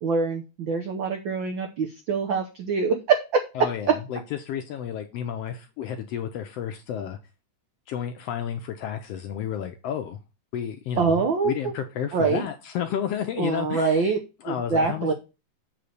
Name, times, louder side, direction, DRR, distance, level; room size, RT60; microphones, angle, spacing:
voice 1, 0.0-3.9 11.0-11.5 12.1-12.4 13.4-14.2 14.5-15.1, right 5 dB, 85° right, 4 dB, 1.0 m, -24 dB
voice 2, 3.5-7.2 7.9-10.2 10.5-14.1 14.4-15.1, left 9 dB, 75° left, 6 dB, 1.5 m, -31 dB
8.2 x 3.3 x 6.4 m, 0.28 s
omnidirectional pair, 3.4 m